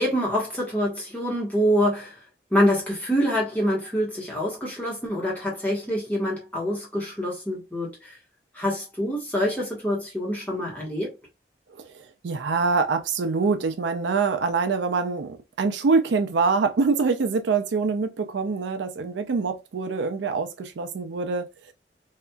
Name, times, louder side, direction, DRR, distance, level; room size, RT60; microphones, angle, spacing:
voice 1, 0.0-2.2 2.5-8.2 8.5-11.2, equal, 10° left, 1.1 m, -26 dB
voice 2, 11.9-21.5, right 4 dB, 75° right, 0.4 m, -25 dB
2.8 x 2.4 x 2.2 m
head